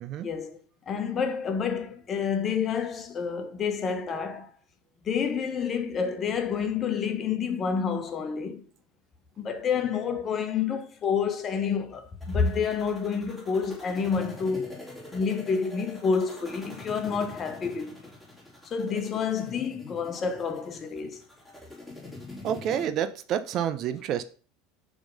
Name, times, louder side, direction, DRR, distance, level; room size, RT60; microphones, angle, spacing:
voice 1, 0.2-0.6 0.9-4.5 5.0-8.6 9.4-14.8 15.1-18.1 18.6-21.2, left 6 dB, 35° left, 1.2 m, -29 dB
sound 1, 12.2-22.9, left 2 dB, ahead, 3.2 m, -45 dB
voice 2, 22.4-24.2, right 9 dB, 50° right, 0.7 m, -29 dB
6.9 x 3.7 x 5.3 m
hypercardioid pair, 85°, 0 cm